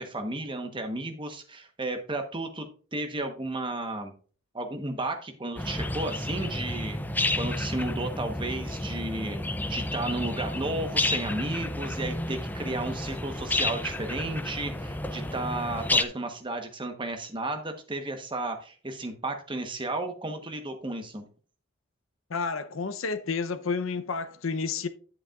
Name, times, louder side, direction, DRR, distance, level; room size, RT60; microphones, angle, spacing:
voice 1, 0.0-4.1 4.5-7.0 7.4-9.4 9.7-21.3, right 2 dB, 25° right, 1.1 m, -33 dB
sound 1, 5.6-16.1, left 2 dB, 10° left, 0.4 m, -31 dB
voice 2, 22.3-24.9, left 4 dB, 75° left, 0.7 m, -30 dB
10.0 x 8.1 x 2.4 m
head